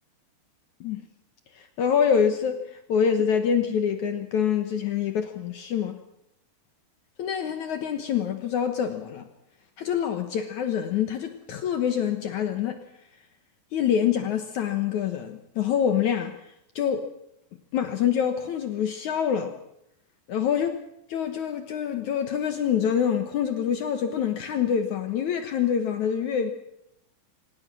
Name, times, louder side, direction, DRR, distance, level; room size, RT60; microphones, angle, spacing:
voice 1, 1.8-2.6 2.9-6.0 7.2-9.3 9.8-12.8 13.7-16.3 16.8-17.1 17.7-19.5 20.3-20.7 21.1-26.5, left 8 dB, 65° left, 7 dB, 1.9 m, -25 dB
25.0 x 18.5 x 6.2 m, 0.79 s
omnidirectional pair, 4.9 m